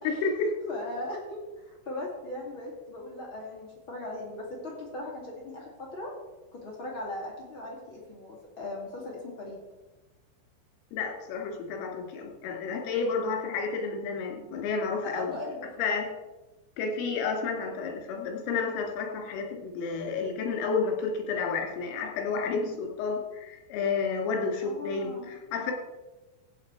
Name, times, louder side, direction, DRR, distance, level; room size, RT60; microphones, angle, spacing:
voice 1, 0.0-0.5 10.9-15.3 15.8-16.1 16.8-25.7, left 5 dB, 85° left, 2 dB, 4.7 m, -31 dB
voice 2, 0.7-6.1 6.5-9.6 15.0-16.0 19.1-19.3 24.6-25.3, left 2 dB, 40° left, -3 dB, 2.0 m, -39 dB
15.5 x 8.5 x 4.6 m, 1.1 s
omnidirectional pair, 5.7 m